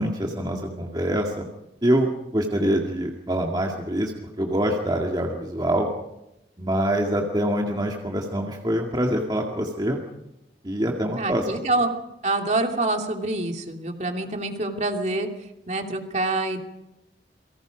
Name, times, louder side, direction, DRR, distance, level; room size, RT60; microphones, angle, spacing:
voice 1, 0.0-1.4 1.8-5.9 6.6-10.0 10.6-11.5, right 1 dB, 25° right, 1 dB, 2.1 m, -25 dB
voice 2, 11.2-11.9 12.2-15.3 15.7-16.6, right 2 dB, 40° right, 3 dB, 2.8 m, -26 dB
28.5 x 23.5 x 5.2 m, 0.91 s
head